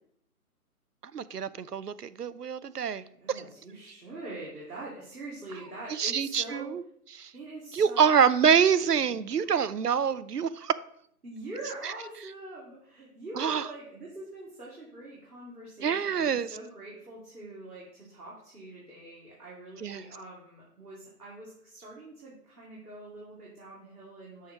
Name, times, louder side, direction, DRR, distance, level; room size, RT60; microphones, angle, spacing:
voice 1, 1.1-3.4 5.9-6.8 7.2-7.3 7.7-10.7 11.8-11.9 13.4-13.7 15.8-16.5 19.8-20.0, right 7 dB, 90° right, 15 dB, 0.5 m, -26 dB
voice 2, 3.2-6.7 7.3-8.1 8.5-9.5 11.2-24.5, right 2 dB, 75° right, -6 dB, 2.5 m, -44 dB
6.4 x 4.5 x 4.7 m, 0.66 s
figure-of-eight pair, 140°, 46 cm